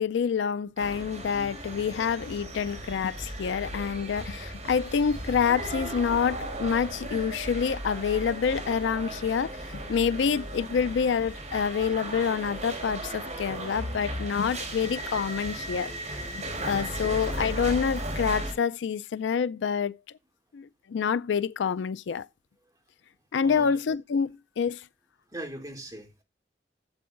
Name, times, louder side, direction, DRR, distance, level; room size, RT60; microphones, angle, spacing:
voice 1, 0.0-20.0 20.5-22.3 23.3-24.8, left 6 dB, 80° left, 0.4 m, -27 dB
sound 1, 0.8-18.5, right 1 dB, 40° right, 4.5 m, -36 dB
voice 2, 23.4-23.7 25.3-26.2, right 1 dB, 20° right, 2.6 m, -40 dB
14.5 x 7.7 x 2.5 m
head